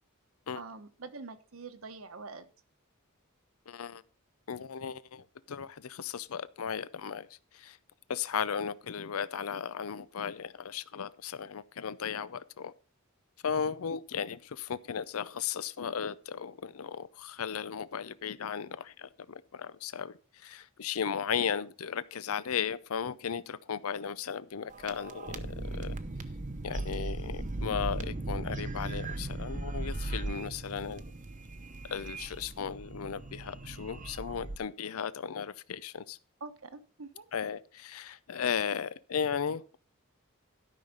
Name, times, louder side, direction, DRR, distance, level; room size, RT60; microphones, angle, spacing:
voice 1, 0.5-2.4 36.4-37.2, right 4 dB, 70° right, 1.1 m, -45 dB
voice 2, 3.7-4.0 4.5-7.3 7.5-7.8 8.1-12.7 13.4-26.0 26.6-31.0 31.8-36.2 37.3-39.6, left 7 dB, 85° left, 0.5 m, -36 dB
sound 1, 24.7-34.6, right 2 dB, 35° right, 0.9 m, -38 dB
12.5 x 5.7 x 5.2 m
head